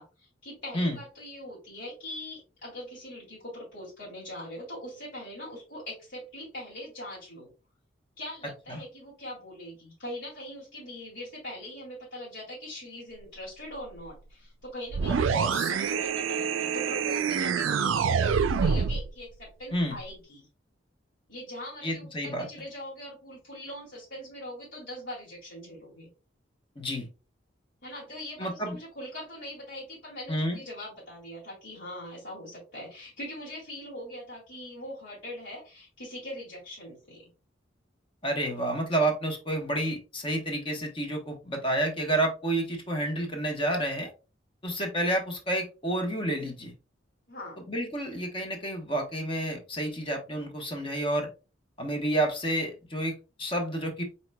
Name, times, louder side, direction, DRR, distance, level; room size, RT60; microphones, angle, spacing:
voice 1, 0.0-7.5 8.2-20.5 21.3-26.1 27.8-37.3 47.3-47.6, left 1 dB, 70° left, -8 dB, 2.3 m, -42 dB
sound 1, 14.9-19.1, right 6 dB, 85° right, 0.4 m, -26 dB
voice 2, 15.1-15.7 19.7-20.0 21.8-22.5 26.8-27.1 28.4-28.8 30.3-30.6 38.2-44.1 44.6-46.7 47.7-51.3 51.8-54.0, right 1 dB, 25° left, 3 dB, 0.9 m, -30 dB
4.6 x 4.2 x 2.2 m, 0.31 s
head